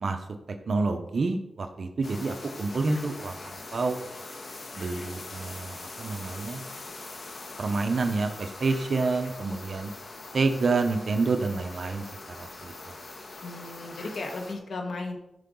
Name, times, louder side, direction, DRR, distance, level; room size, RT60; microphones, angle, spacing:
voice 1, 0.7-4.1 4.8-6.6 7.6-9.9 10.3-12.9, right 3 dB, 65° right, 6 dB, 1.0 m, -28 dB
sound 1, 2.0-14.5, left 2 dB, 60° left, 1.7 m, -42 dB
voice 2, 13.4-15.2, left 2 dB, 80° left, 3 dB, 1.7 m, -35 dB
14.5 x 5.8 x 4.0 m, 0.85 s
cardioid pair, 70°, 0 cm